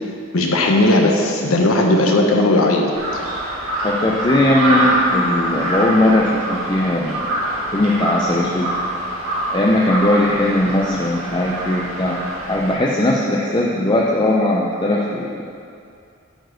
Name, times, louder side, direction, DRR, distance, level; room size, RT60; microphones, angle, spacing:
voice 1, 0.0-3.2, left 1 dB, 80° left, 1 dB, 1.1 m, -17 dB
Crow, 2.9-12.7, right 1 dB, 75° right, 1.8 m, -24 dB
voice 2, 3.8-7.2 7.7-8.7 9.5-12.2 12.5-15.5, left 1 dB, 20° left, -3 dB, 0.6 m, -18 dB
9.1 x 4.5 x 6.4 m, 2.4 s
head